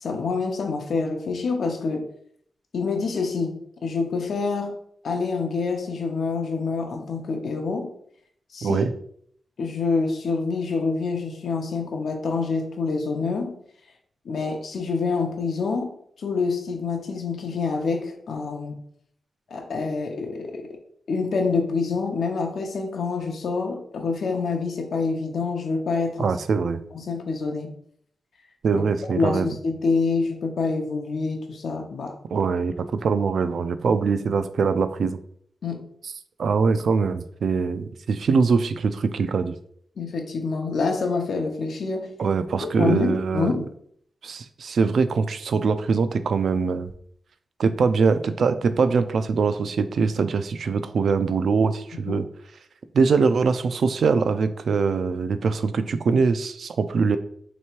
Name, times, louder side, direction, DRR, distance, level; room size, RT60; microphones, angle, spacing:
voice 1, 0.0-2.1 2.7-4.8 5.0-7.9 8.5-8.9 9.6-13.5 14.3-15.9 16.2-18.8 19.5-20.7 21.1-26.3 26.9-27.7 28.7-32.1 35.6-35.9 40.0-42.1 42.6-43.7 52.1-52.2, left 4 dB, 70° left, 3 dB, 0.7 m, -26 dB
voice 2, 8.6-8.9 26.2-26.8 28.6-29.5 32.3-35.2 36.4-39.5 42.2-43.5 44.2-46.9 47.6-52.2 52.9-57.2, right 5 dB, 70° right, 11 dB, 0.3 m, -22 dB
3.2 x 3.0 x 4.5 m, 0.65 s
wide cardioid pair, 135°, 0 cm